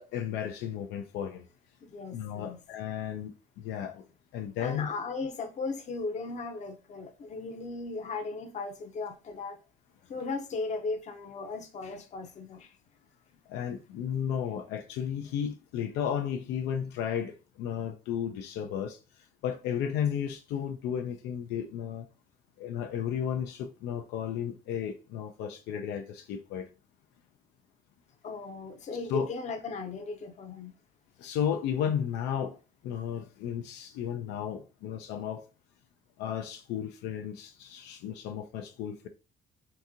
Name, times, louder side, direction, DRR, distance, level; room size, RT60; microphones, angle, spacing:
voice 1, 0.0-1.5 2.1-4.0 4.3-4.9 13.5-19.0 19.4-22.1 22.6-26.7 29.1-29.3 31.2-32.6 32.8-35.4 36.2-39.1, left 8 dB, 85° left, 0.5 m, -33 dB
voice 2, 1.8-2.6 4.6-9.6 10.1-12.7 28.2-30.7, left 3 dB, 45° left, 0.7 m, -37 dB
2.9 x 2.6 x 3.6 m
cardioid pair, 110°, 17 cm